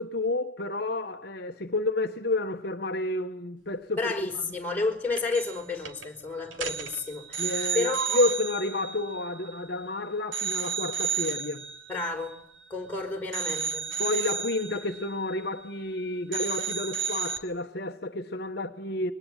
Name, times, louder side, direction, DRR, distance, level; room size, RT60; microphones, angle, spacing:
voice 1, 0.0-4.3 7.4-11.6 14.0-19.1, left 2 dB, 55° left, 1.3 m, -30 dB
voice 2, 4.0-8.2 11.9-12.4 12.7-14.0, left 3 dB, 10° left, 4.9 m, -31 dB
sound 1, 5.2-5.6 5.9-6.1 6.5-9.9 10.3-12.9 13.3-16.0 16.3-17.4, right 7 dB, 85° right, 2.8 m, -33 dB
24.0 x 19.0 x 9.1 m
head